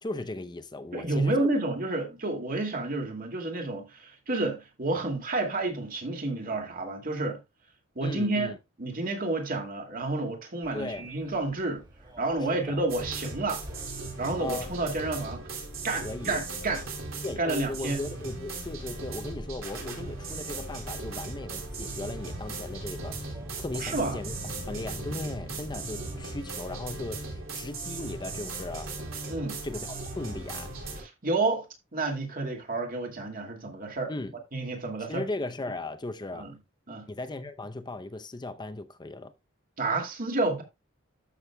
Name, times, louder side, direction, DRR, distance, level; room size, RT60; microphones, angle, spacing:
voice 1, 0.0-1.5 8.0-8.5 10.7-11.1 12.4-12.8 14.4-14.7 15.9-16.4 17.2-24.4 24.7-28.9 29.6-30.7 34.1-34.3 35.1-36.5 37.1-39.3, left 2 dB, 20° left, 0.6 m, -37 dB
voice 2, 0.9-7.4 8.0-11.8 12.2-13.6 14.2-15.4 15.8-16.9 17.4-18.0 23.7-24.2 29.3-29.6 31.0-31.7 31.9-34.1 34.5-35.2 36.3-36.5 36.9-37.1 39.8-40.6, right 2 dB, 45° right, 2.2 m, -30 dB
Subway metro underground, 10.6-26.2, equal, 20° right, 2.3 m, -46 dB
sound 1, 12.9-31.0, right 3 dB, 75° right, 3.3 m, -38 dB
13.0 x 6.2 x 2.3 m
head